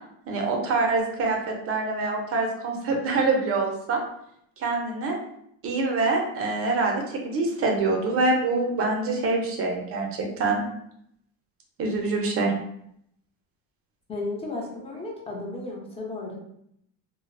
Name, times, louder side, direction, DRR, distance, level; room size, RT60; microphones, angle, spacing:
voice 1, 0.3-4.0 4.6-5.2 5.6-10.6 11.8-12.5, right 3 dB, 35° right, 1 dB, 0.5 m, -25 dB
voice 2, 14.1-16.3, left 2 dB, 15° left, -2 dB, 0.5 m, -34 dB
2.5 x 2.0 x 2.5 m, 0.73 s
cardioid pair, 135°, 39 cm